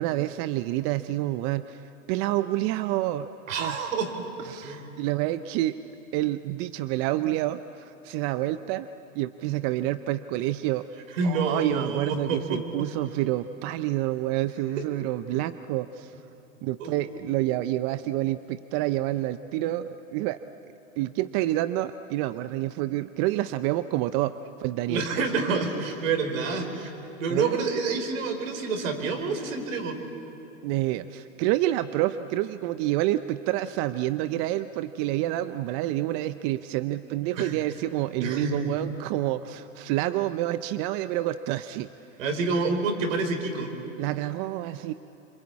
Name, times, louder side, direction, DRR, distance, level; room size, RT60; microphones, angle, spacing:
voice 1, 0.0-1.8 2.1-3.3 3.6-3.9 4.4-5.8 6.1-8.9 9.1-10.8 11.2-16.1 16.6-20.4 21.0-24.3 24.6-25.0 27.3-27.5 30.6-41.9 44.0-44.9, right 15 dB, 40° right, 12 dB, 0.6 m, -28 dB
voice 2, 3.5-4.1 4.6-4.9 11.2-12.9 15.3-15.4 16.8-17.2 24.9-26.9 27.2-30.0 37.4-37.5 38.2-38.7 42.2-43.7, right 4 dB, 70° right, 5 dB, 4.8 m, -28 dB
26.5 x 24.0 x 8.5 m, 2.9 s
hypercardioid pair, 120°, 41 cm